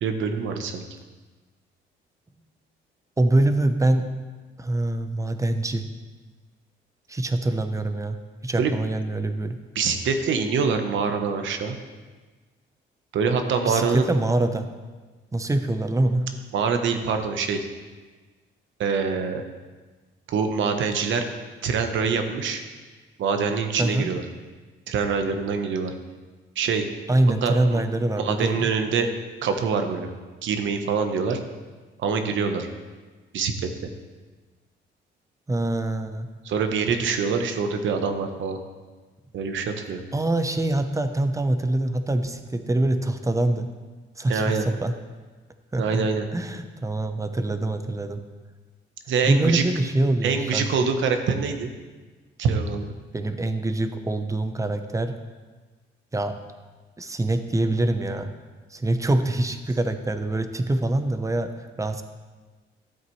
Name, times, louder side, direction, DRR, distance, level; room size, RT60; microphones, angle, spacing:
voice 1, 0.0-0.8 8.6-8.7 9.7-11.8 13.1-14.1 16.5-17.7 18.8-19.4 20.3-21.3 21.6-22.6 23.2-24.2 24.9-25.9 26.6-26.9 27.4-27.8 28.2-29.1 29.4-30.1 30.4-31.4 32.0-32.7 33.3-33.5 33.8-33.9 36.4-38.6 39.3-40.0 44.3-44.6 45.8-46.2 49.1-49.6 50.2-51.7 52.4-52.9, right 5 dB, 70° right, 6 dB, 1.0 m, -25 dB
voice 2, 3.2-4.0 4.6-5.8 7.1-8.2 8.4-9.6 13.7-14.7 15.3-16.3 23.8-24.1 27.1-28.7 35.5-36.3 40.1-43.7 44.2-45.0 45.7-46.1 46.3-48.2 49.2-50.7 53.1-55.2 56.1-56.4 57.0-58.3 58.7-62.0, right 2 dB, 15° right, 8 dB, 0.8 m, -24 dB
12.5 x 8.0 x 3.2 m, 1.3 s
cardioid pair, 90°, 20 cm